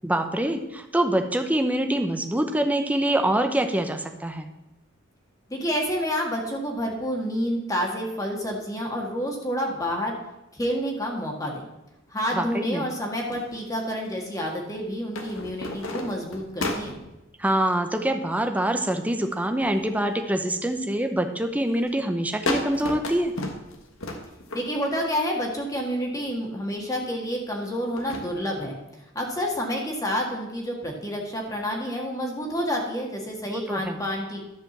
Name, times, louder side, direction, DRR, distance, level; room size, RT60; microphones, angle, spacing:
voice 1, 0.0-4.5 12.3-12.9 17.4-23.3 33.5-34.0, right 1 dB, 5° right, 6 dB, 0.8 m, -25 dB
voice 2, 5.5-10.2 10.5-11.7 12.1-17.0 24.5-28.8 29.1-34.4, equal, 15° left, 0 dB, 1.7 m, -29 dB
sound 1, 13.3-14.3 15.1-17.1 19.2-19.9 20.3-20.8 21.3-21.6 21.9-22.0 22.5-25.0 25.7-25.8 27.7-28.3, left 2 dB, 80° left, 1.4 m, -33 dB
11.5 x 5.1 x 7.2 m, 0.95 s
head